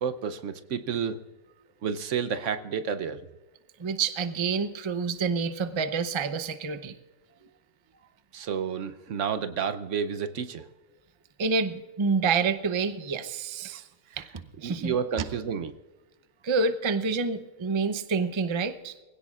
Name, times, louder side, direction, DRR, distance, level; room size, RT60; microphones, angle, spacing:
voice 1, 0.0-1.2 1.8-3.2 8.3-10.6 14.6-15.7, right 7 dB, 65° right, 11 dB, 1.0 m, -30 dB
voice 2, 3.8-7.0 11.4-13.8 14.2-14.3 14.6-14.9 16.4-18.9, right 4 dB, 30° right, 10 dB, 0.5 m, -28 dB
24.0 x 16.5 x 2.4 m, 1.2 s
omnidirectional pair, 1.5 m